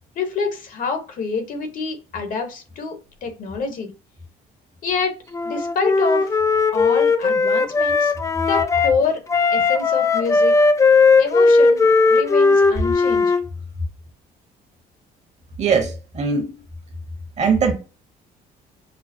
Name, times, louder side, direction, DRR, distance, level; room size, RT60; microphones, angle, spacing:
voice 1, 0.2-3.9 4.8-5.2 5.4-6.3 6.7-8.1 8.5-9.2 9.5-10.6 11.2-13.3, left 5 dB, 55° left, 1.0 m, -26 dB
Wind instrument woodwind instrument, 5.3-8.9 9.3-13.4, left 4 dB, 20° left, 0.3 m, -17 dB
voice 2, 15.6-16.6 17.4-17.7, right 5 dB, 40° right, 1.0 m, -20 dB
5.4 x 2.0 x 2.6 m
cardioid pair, 110°, 17 cm